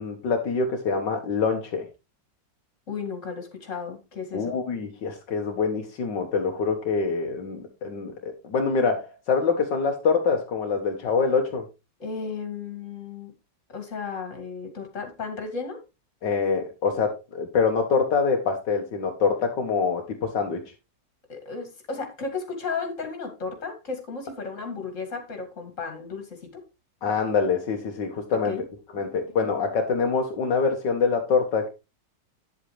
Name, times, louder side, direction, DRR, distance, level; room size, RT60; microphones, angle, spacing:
voice 1, 0.0-1.9 4.3-11.6 16.2-20.6 27.0-28.6 28.9-31.7, left 5 dB, 75° left, 3 dB, 1.9 m, -25 dB
voice 2, 2.9-4.6 12.0-13.3 13.7-15.8 21.3-26.6 28.3-28.6 29.3-29.4, left 5 dB, 45° left, 4 dB, 2.8 m, -34 dB
9.9 x 7.8 x 3.3 m, 0.26 s
omnidirectional pair, 1.9 m